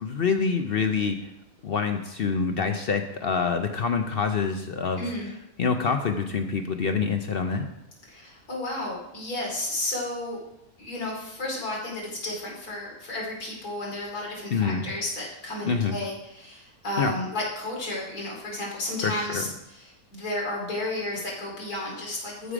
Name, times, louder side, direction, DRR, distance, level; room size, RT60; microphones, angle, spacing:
voice 1, 0.0-1.2 1.6-5.0 5.6-7.7 14.5-14.8 15.6-15.9 17.0-17.1 19.0-19.4, left 5 dB, 55° left, 6 dB, 0.6 m, -26 dB
voice 2, 5.0-5.4 8.1-10.4 10.8-22.5, left 2 dB, 90° left, -3 dB, 3.2 m, -32 dB
13.5 x 4.9 x 5.0 m, 0.85 s
omnidirectional pair, 1.6 m